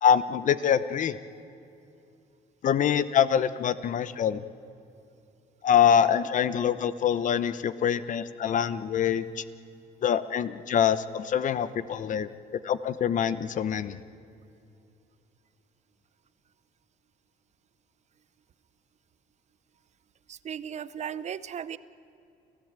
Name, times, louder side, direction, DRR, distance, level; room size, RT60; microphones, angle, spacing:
voice 1, 0.0-1.2 2.6-4.4 5.6-9.4 10.0-12.3 12.6-14.0, left 8 dB, 50° left, 15 dB, 0.9 m, -25 dB
voice 2, 20.3-21.8, right 8 dB, 40° right, 17 dB, 0.7 m, -36 dB
29.5 x 14.0 x 8.9 m, 2.6 s
cardioid pair, 110°, 17 cm